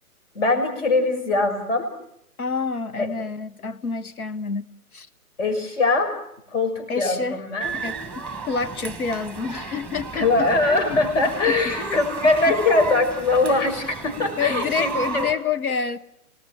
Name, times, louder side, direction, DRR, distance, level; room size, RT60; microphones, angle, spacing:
voice 1, 0.3-1.9 3.0-3.1 5.4-6.2 6.5-7.7 10.1-15.3, left 3 dB, 50° left, 6.2 m, -22 dB
voice 2, 2.4-5.1 6.9-7.4 7.7-11.0 11.6-12.0 12.5-12.6 14.4-16.0, left 5 dB, 70° left, 1.4 m, -28 dB
sound 1, 7.6-15.3, right 4 dB, 5° left, 1.5 m, -33 dB
28.0 x 19.0 x 7.8 m
figure-of-eight pair, 130°, 45 cm